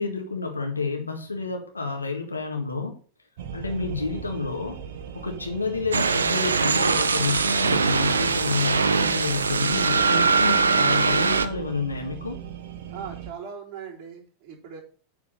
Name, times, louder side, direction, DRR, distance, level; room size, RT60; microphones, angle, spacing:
voice 1, 0.0-3.0 3.5-4.8 5.1-12.4, left 4 dB, 80° left, 3 dB, 1.9 m, -29 dB
sound 1, 3.4-13.3, right 8 dB, 55° right, 1.1 m, -38 dB
sound 2, 5.9-11.5, right 4 dB, 75° right, 0.7 m, -22 dB
voice 2, 12.9-14.8, right 7 dB, 35° right, -5 dB, 4.3 m, -39 dB
9.3 x 4.8 x 6.3 m, 0.40 s
figure-of-eight pair, 90°, 0 cm